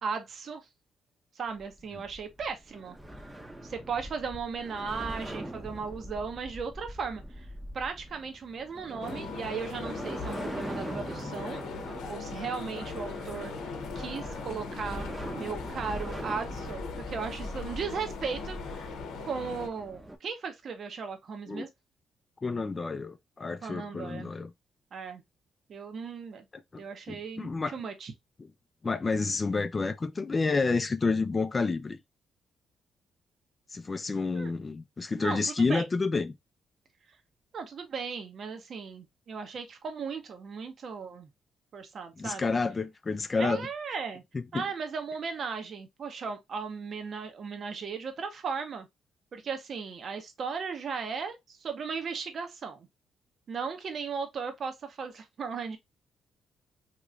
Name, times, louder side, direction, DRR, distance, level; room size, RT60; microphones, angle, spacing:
voice 1, 0.0-0.6 1.3-3.0 3.6-7.5 7.7-11.7 12.1-13.5 13.9-15.1 15.3-18.9 19.2-21.7 23.6-24.3 24.9-25.2 25.7-26.5 26.8-28.1 34.3-34.5 35.2-35.8 37.5-41.3 41.7-42.5 43.4-44.2 44.5-48.9 49.3-52.9 53.5-55.8, right 5 dB, 55° right, 0.8 m, -36 dB
sound 1, 1.5-20.2, right 1 dB, 10° right, 0.7 m, -42 dB
sound 2, 9.0-19.7, left 4 dB, 90° left, 0.7 m, -40 dB
voice 2, 22.4-24.5 26.5-27.7 28.8-32.0 33.7-36.3 42.2-43.7 44.3-44.6, left 4 dB, 30° left, 0.4 m, -29 dB
3.0 x 3.0 x 2.4 m
cardioid pair, 90°, 0 cm